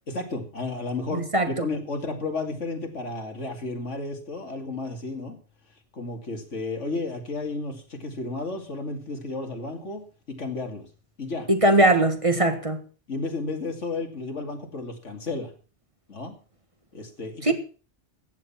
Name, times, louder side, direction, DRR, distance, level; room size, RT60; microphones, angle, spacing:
voice 1, 0.1-5.4 5.9-10.9 11.2-11.5 13.1-15.5 16.1-16.4 16.9-17.5, left 3 dB, 85° left, 2.9 m, -32 dB
voice 2, 1.1-1.5 11.5-12.8 17.4-17.5, right 1 dB, 30° right, 1.8 m, -20 dB
15.0 x 9.6 x 5.8 m
omnidirectional pair, 1.2 m